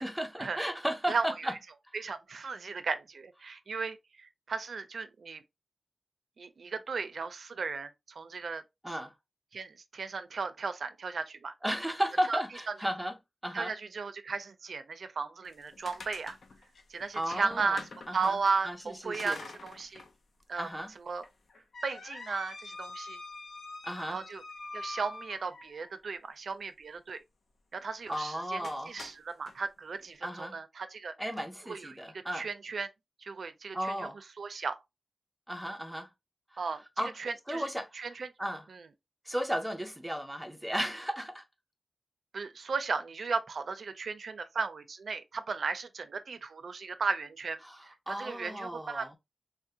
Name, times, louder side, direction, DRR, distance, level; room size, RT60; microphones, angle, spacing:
voice 1, 0.0-1.6 8.8-9.1 11.6-13.2 13.4-13.7 17.1-17.8 18.1-18.4 18.6-19.4 20.6-20.9 23.8-24.2 28.1-29.0 30.2-30.6 31.2-32.5 33.7-34.2 35.5-36.1 36.5-37.2 37.5-38.1 38.4-38.7 39.3-41.4 47.6-49.2, equal, 5° right, 0.5 m, -35 dB
voice 2, 1.9-5.4 6.4-8.6 9.5-11.5 12.3-12.4 13.5-16.4 16.9-17.8 18.1-20.0 20.5-20.7 21.1-21.2 21.8-23.2 24.1-24.4 24.7-27.2 27.7-28.6 28.9-31.1 31.7-32.9 33.2-34.1 34.4-34.8 36.6-36.8 37.2-37.6 38.0-38.3 42.3-47.6 48.1-49.2, right 4 dB, 75° right, 0.4 m, -35 dB
sound 1, 15.4-18.5 19.1-20.1 20.5-20.6 21.2-25.9 28.0-28.2 28.6-29.6, left 3 dB, 80° left, 0.5 m, -45 dB
3.5 x 2.1 x 2.7 m
wide cardioid pair, 135°, 0 cm